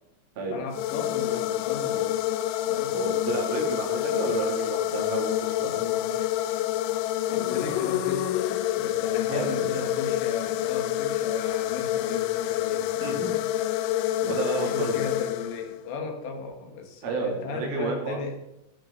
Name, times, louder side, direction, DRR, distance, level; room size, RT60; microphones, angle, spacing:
voice 1, 0.4-2.3 2.7-3.0 5.6-6.3 7.3-8.4 8.8-13.3 14.5-18.4, left 4 dB, 70° left, 4 dB, 4.0 m, -36 dB
sound 1, 0.7-15.9, left 13 dB, 90° left, 3.1 m, -27 dB
voice 2, 2.9-5.3 5.6-5.8 9.3-9.8 13.0-13.3 13.6-13.9 14.2-15.0 17.0-18.2, right 4 dB, 85° right, 0 dB, 5.6 m, -31 dB
17.0 x 12.5 x 4.1 m, 0.89 s
omnidirectional pair, 5.4 m